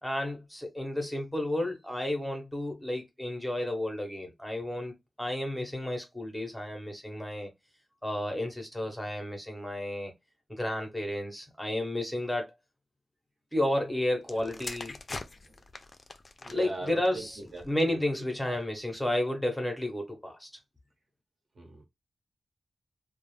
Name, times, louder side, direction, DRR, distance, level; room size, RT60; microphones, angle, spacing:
voice 1, 0.0-4.9 5.2-7.5 8.0-10.1 10.5-12.5 13.5-15.0 16.5-17.4 17.7-20.5, left 1 dB, 5° left, 0.7 m, -32 dB
sound 1, 14.2-18.0 18.8-19.1, left 3 dB, 35° left, 0.3 m, -44 dB
voice 2, 16.4-18.0 18.5-18.6 21.6-21.8, right 2 dB, 55° right, 1.0 m, -41 dB
2.4 x 2.0 x 3.0 m
wide cardioid pair, 95°, 0 cm